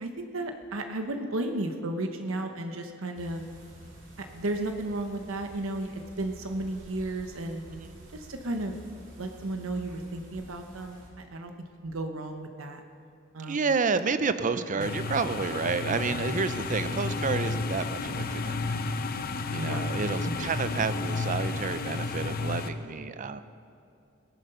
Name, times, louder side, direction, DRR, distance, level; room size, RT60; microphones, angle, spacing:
voice 1, 0.0-3.4 4.2-7.7 8.1-8.8 9.2-11.5 11.8-12.8 13.3-13.6 14.8-14.9 19.6-19.8 20.3-20.5, right 2 dB, 80° right, 6 dB, 0.9 m, -34 dB
sound 1, 3.1-11.1, right 1 dB, 65° right, 2.8 m, -50 dB
voice 2, 13.5-18.6 19.0-19.1 19.5-23.4, right 4 dB, 40° right, 12 dB, 0.5 m, -30 dB
sound 2, 14.8-22.7, left 3 dB, 50° left, 0.7 m, -31 dB
17.5 x 9.4 x 5.5 m, 2.5 s
head